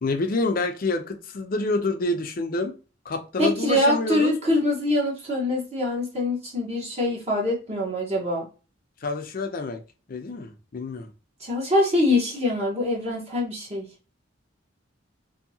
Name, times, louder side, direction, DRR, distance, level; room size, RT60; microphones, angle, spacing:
voice 1, 0.0-2.7 3.1-4.3 9.0-9.8 10.1-11.1, left 3 dB, 50° left, 6 dB, 0.5 m, -27 dB
voice 2, 3.4-8.5 11.4-13.9, left 1 dB, 35° right, -3 dB, 1.0 m, -24 dB
2.7 x 2.7 x 2.7 m, 0.33 s
head